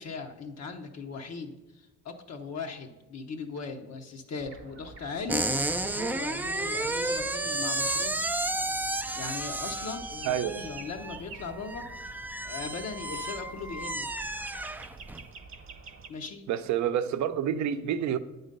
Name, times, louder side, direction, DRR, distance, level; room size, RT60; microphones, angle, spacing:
voice 1, 0.0-5.4 5.9-8.2 9.2-12.1 12.4-14.1 16.1-16.4, left 4 dB, 60° left, 0.8 m, -39 dB
sound 1, 4.4-16.1, right 4 dB, 45° right, 1.0 m, -49 dB
sound 2, 5.3-15.3, right 2 dB, 5° right, 0.3 m, -32 dB
voice 2, 10.2-10.7 16.5-18.2, right 9 dB, 70° right, 0.6 m, -28 dB
9.0 x 4.0 x 5.2 m
cardioid pair, 90°, 30 cm